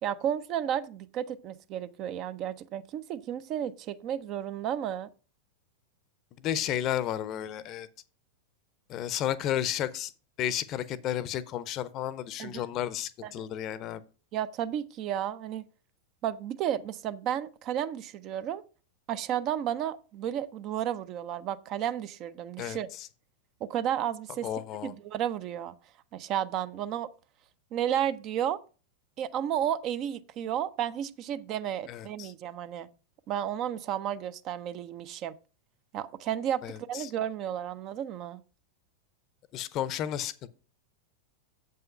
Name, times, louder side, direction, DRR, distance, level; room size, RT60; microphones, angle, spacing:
voice 1, 0.0-5.1 12.4-12.6 13.2-13.5 14.3-15.7 16.2-18.6 19.1-22.9 23.6-24.5 24.8-25.7 26.1-27.1 27.7-28.6 29.2-32.9 33.3-35.3 35.9-36.6 36.9-38.4, right 10 dB, 35° right, 0.5 m, -32 dB
voice 2, 6.4-7.9 8.9-10.1 10.4-14.0 22.6-23.1 24.4-24.9 31.9-32.3 36.6-37.1 39.5-40.5, left 11 dB, 35° left, 0.6 m, -32 dB
7.6 x 5.5 x 5.4 m
figure-of-eight pair, 90°, 0 cm